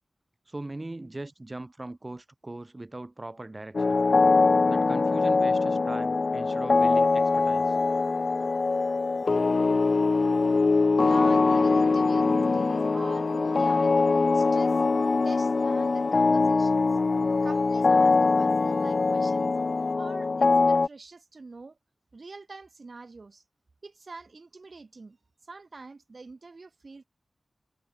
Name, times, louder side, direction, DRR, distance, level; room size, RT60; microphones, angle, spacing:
voice 1, 0.5-4.0 4.7-7.8, right 2 dB, 30° right, 6.2 m, -40 dB
sound 1, 3.7-20.9, left 3 dB, 60° left, 0.7 m, -23 dB
sound 2, 6.7-20.0, left 2 dB, 40° left, 6.6 m, -47 dB
voice 2, 11.0-13.9 14.3-14.8 15.2-17.0 17.4-19.5 19.9-21.8 22.1-23.4 23.8-25.2 25.4-27.0, right 3 dB, 55° right, 3.0 m, -45 dB
wide cardioid pair, 80°, 0 cm